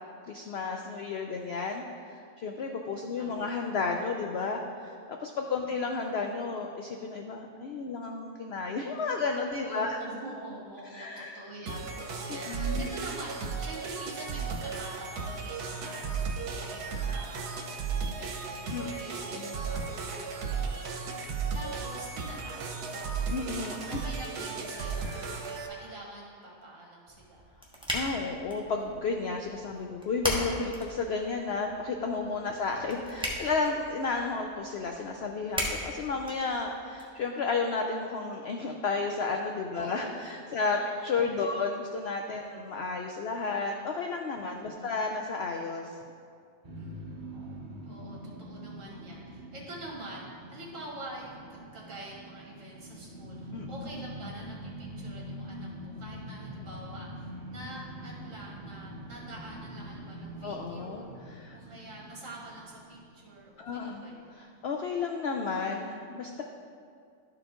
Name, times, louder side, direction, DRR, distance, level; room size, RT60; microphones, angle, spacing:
voice 1, 0.3-4.9 5.2-10.0 10.9-11.4 12.5-12.9 18.7-18.9 19.3-19.6 23.3-24.0 25.0-25.3 27.9-45.9 48.8-48.9 53.5-53.7 60.4-61.6 63.6-64.1 64.3-66.4, left 4 dB, 70° left, 3 dB, 0.6 m, -32 dB
voice 2, 3.2-3.6 5.6-5.7 9.6-17.6 18.1-23.2 23.9-27.5 39.7-40.2 40.6-41.1 41.4-41.7 42.5-42.8 44.5-45.0 46.7-61.1 61.5-64.3, right 1 dB, 55° right, -3 dB, 1.8 m, -46 dB
sound 1, 11.7-25.7, right 5 dB, 80° right, 1.3 m, -35 dB
sound 2, 27.1-37.0, equal, 5° right, 0.9 m, -39 dB
Unfa Fart Remix, 46.6-63.8, equal, 35° right, 1.0 m, -44 dB
12.0 x 4.8 x 3.7 m, 2.3 s
omnidirectional pair, 1.7 m